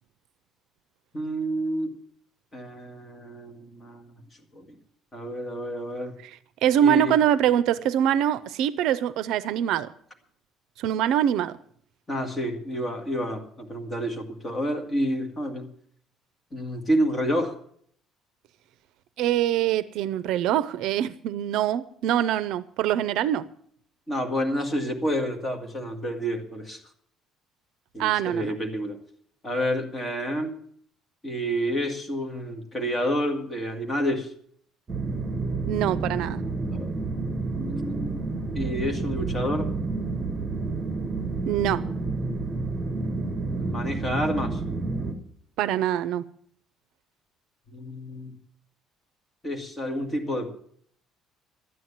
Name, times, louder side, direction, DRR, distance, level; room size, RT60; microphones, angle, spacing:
voice 1, 1.1-1.9 2.5-4.1 4.5-4.7 5.1-6.2 6.8-7.2 12.1-15.7 16.5-17.6 24.1-26.8 27.9-29.0 29.4-30.5 31.2-34.3 36.7-36.9 37.6-38.1 38.5-39.7 43.5-44.6 47.7-48.4 49.4-50.5, equal, 15° left, 2.1 m, -29 dB
voice 2, 6.2-9.9 10.8-11.6 19.2-23.5 28.0-28.5 35.7-36.4 41.4-41.9 45.6-46.2, right 10 dB, 70° right, 0.5 m, -24 dB
sound 1, 34.9-45.1, right 3 dB, 20° right, 1.7 m, -29 dB
12.5 x 9.4 x 7.3 m
cardioid pair, 165°, 0 cm